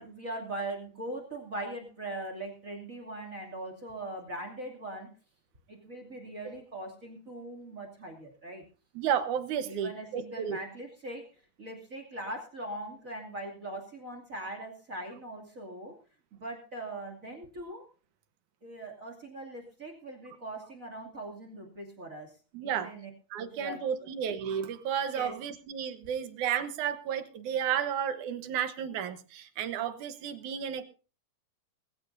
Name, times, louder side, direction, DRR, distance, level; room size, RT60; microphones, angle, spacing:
voice 1, 0.0-5.1 5.7-8.6 9.6-11.3 11.6-16.0 16.3-17.8 18.6-22.4 22.6-23.1 23.6-24.1 25.1-25.3, right 1 dB, 25° right, 3 dB, 2.7 m, -41 dB
voice 2, 9.0-10.6 22.5-22.9 23.3-30.8, right 8 dB, 75° right, 10 dB, 2.5 m, -32 dB
21.0 x 15.0 x 2.7 m, 0.34 s
omnidirectional pair, 3.6 m